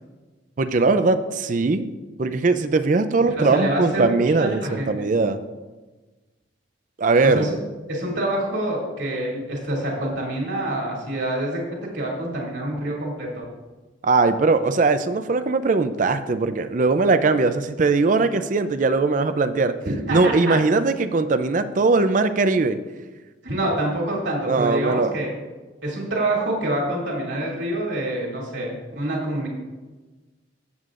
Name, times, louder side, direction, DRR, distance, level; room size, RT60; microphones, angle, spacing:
voice 1, 0.6-1.9 2.2-5.4 7.0-7.5 14.0-19.7 20.1-22.8 24.5-25.1, right 3 dB, 45° right, 10 dB, 0.4 m, -20 dB
voice 2, 3.4-4.1 4.3-4.9 7.2-7.6 7.9-13.4 19.8-20.5 23.4-25.3 25.8-29.5, right 1 dB, 70° right, -3 dB, 2.6 m, -26 dB
14.0 x 8.1 x 2.5 m, 1.2 s
head